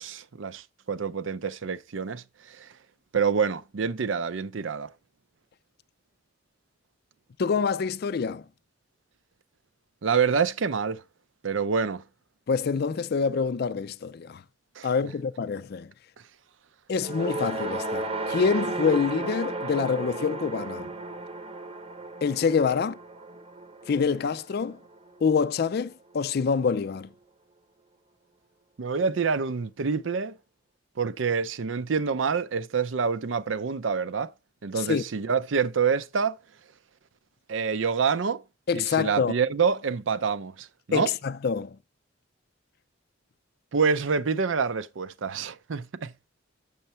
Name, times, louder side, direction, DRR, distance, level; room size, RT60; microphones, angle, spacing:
voice 1, 0.0-2.7 3.1-4.9 10.0-11.0 11.4-12.0 14.8-14.9 28.8-30.3 31.0-34.3 34.6-36.3 37.5-38.4 38.7-41.1 43.7-46.1, right 5 dB, 75° right, 0.6 m, -27 dB
voice 2, 7.4-8.4 12.5-14.4 14.8-15.9 16.9-20.9 22.2-22.9 23.9-24.8 25.2-27.1 34.7-35.0 38.7-39.3 40.9-41.8, left 5 dB, 55° left, 0.4 m, -26 dB
sound 1, 16.9-25.3, right 2 dB, 30° right, 0.8 m, -34 dB
7.0 x 6.5 x 4.3 m
head